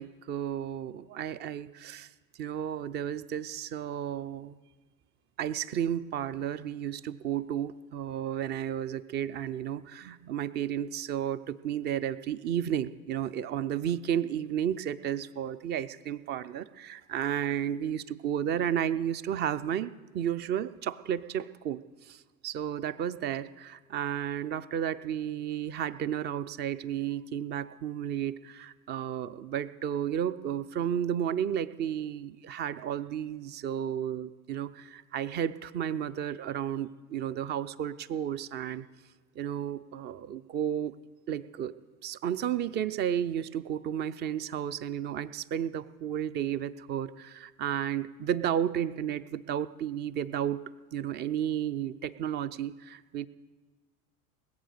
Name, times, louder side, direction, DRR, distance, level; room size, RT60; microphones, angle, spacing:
voice 1, 0.0-2.1 2.4-4.6 5.4-38.8 39.4-40.9 41.3-41.8 42.0-50.6 50.9-53.3, right 9 dB, 25° right, 15 dB, 0.4 m, -32 dB
20.5 x 7.8 x 6.5 m, 1.3 s
figure-of-eight pair, 85°, 45 cm